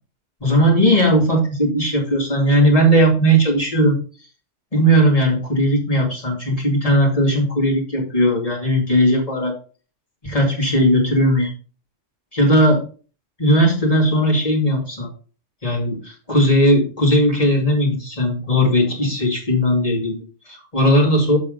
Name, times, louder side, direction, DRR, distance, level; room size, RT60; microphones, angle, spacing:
voice 1, 0.4-4.0 4.7-9.6 10.2-11.5 12.3-12.8 13.4-15.1 15.6-21.4, equal, 30° left, -3 dB, 2.4 m, -17 dB
7.5 x 7.1 x 3.8 m, 0.38 s
omnidirectional pair, 1.3 m